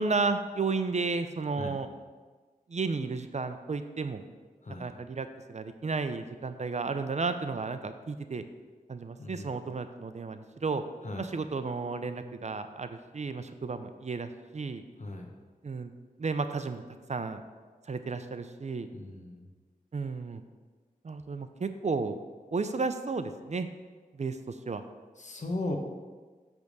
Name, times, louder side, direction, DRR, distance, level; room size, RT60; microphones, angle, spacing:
voice 1, 0.0-1.9 2.7-4.2 4.8-8.4 8.9-10.8 11.2-14.8 15.6-15.9 16.2-16.8 17.1-17.4 17.9-18.9 19.9-20.4 21.0-22.2 22.5-23.7 24.2-24.8, right 4 dB, 50° right, 9 dB, 0.5 m, -33 dB
voice 2, 9.2-9.5 11.0-11.3 15.0-15.3 18.9-19.5 25.2-25.8, left 2 dB, 55° left, 2 dB, 1.1 m, -37 dB
8.0 x 3.6 x 6.6 m, 1.4 s
wide cardioid pair, 80°, 15 cm